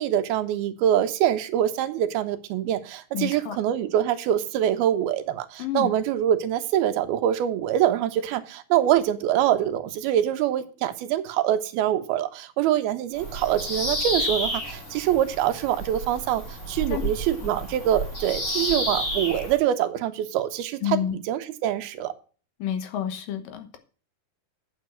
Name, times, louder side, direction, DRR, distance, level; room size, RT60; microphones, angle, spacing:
voice 1, 0.0-21.0 21.3-22.1, right 11 dB, 85° right, 2.8 m, -24 dB
voice 2, 3.1-3.6 5.6-5.9 16.9-17.0 17.4-17.5 20.8-21.2 22.6-23.8, left 10 dB, 70° left, 2.6 m, -29 dB
Bird vocalization bird call bird song, 13.1-19.6, equal, 25° left, 2.1 m, -30 dB
9.5 x 7.2 x 6.0 m
omnidirectional pair, 4.4 m